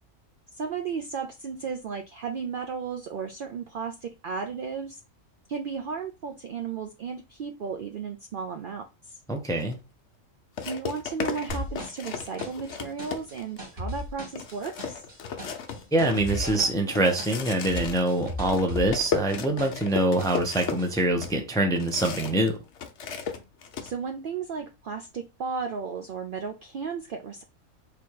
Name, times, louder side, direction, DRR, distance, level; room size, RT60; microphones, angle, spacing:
voice 1, 0.5-5.0 5.5-9.2 10.6-15.0 23.8-27.4, right 5 dB, 65° right, 0.5 m, -34 dB
voice 2, 9.3-9.8 15.9-22.6, right 1 dB, 5° left, 0.4 m, -24 dB
sound 1, 9.6-9.8 10.6-13.6 14.0-14.1 14.4-22.5 22.8-23.9, left 6 dB, 65° left, 1.0 m, -35 dB
sound 2, 11.5-19.9 20.2-21.0, equal, 45° right, 1.9 m, -37 dB
3.4 x 2.9 x 4.5 m
omnidirectional pair, 1.3 m